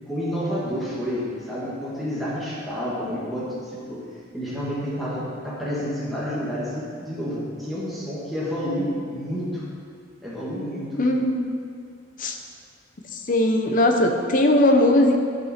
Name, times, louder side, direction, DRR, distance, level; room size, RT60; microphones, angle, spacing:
voice 1, 0.0-4.0 4.3-9.6 10.2-10.9, equal, ahead, -9 dB, 1.8 m, -29 dB
voice 2, 11.0-11.5 12.2-12.3 13.1-15.2, left 1 dB, 45° left, 3 dB, 0.9 m, -19 dB
13.5 x 5.5 x 4.3 m, 2.2 s
head